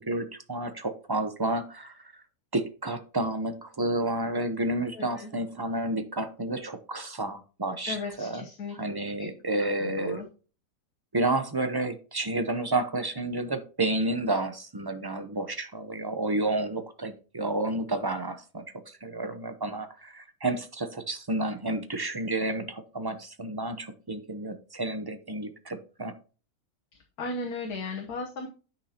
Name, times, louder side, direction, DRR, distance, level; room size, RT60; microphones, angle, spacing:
voice 1, 0.1-2.1 2.5-8.4 8.7-10.2 11.1-26.1, right 2 dB, 30° right, 9 dB, 0.4 m, -30 dB
voice 2, 4.9-5.3 7.9-9.3 9.6-10.3 27.2-28.5, left 3 dB, 80° left, 1 dB, 1.6 m, -36 dB
10.0 x 5.8 x 2.9 m, 0.36 s
omnidirectional pair, 1.6 m